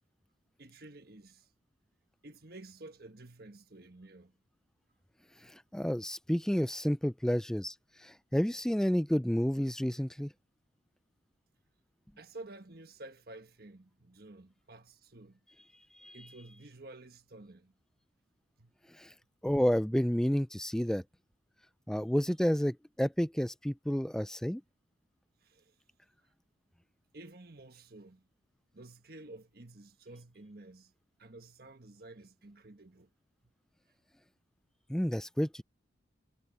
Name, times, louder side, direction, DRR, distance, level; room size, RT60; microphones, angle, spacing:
voice 1, 0.6-1.5 2.2-4.3 5.4-5.5 12.2-15.4 16.1-17.7 18.6-18.7 25.4-25.7 27.1-28.3 28.7-30.9 31.2-33.1, right 2 dB, 50° right, 1.5 m, -51 dB
voice 2, 5.4-7.7 8.0-10.3 15.9-16.2 19.0-19.1 19.4-21.0 21.9-24.6 34.9-35.6, equal, 5° left, 0.3 m, -30 dB
head